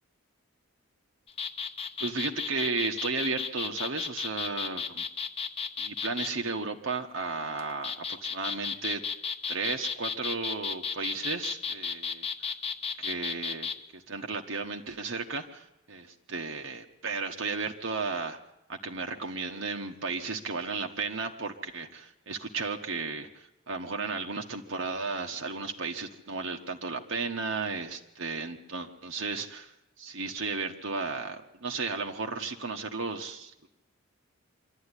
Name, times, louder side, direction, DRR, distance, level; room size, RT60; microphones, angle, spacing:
sound 1, 1.3-6.3 7.6-13.8, left 6 dB, 25° left, 0.8 m, -34 dB
voice 1, 2.0-5.0 5.8-9.0 9.5-12.3 13.0-18.4 18.7-29.7 30.0-33.7, right 4 dB, 65° right, 3 dB, 1.2 m, -34 dB
24.5 x 12.5 x 9.8 m, 0.91 s
head